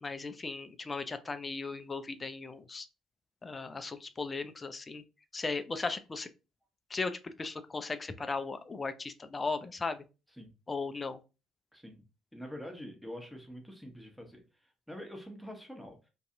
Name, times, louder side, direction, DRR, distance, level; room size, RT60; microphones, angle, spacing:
voice 1, 0.0-2.9 3.4-5.0 5.3-6.3 6.9-10.0 10.7-11.2, left 4 dB, 30° left, 10 dB, 0.4 m, -37 dB
voice 2, 11.7-12.0 12.3-14.4 14.9-16.1, equal, ahead, 2 dB, 1.0 m, -45 dB
2.6 x 2.3 x 2.6 m, 0.30 s
hypercardioid pair, 50°, 0 cm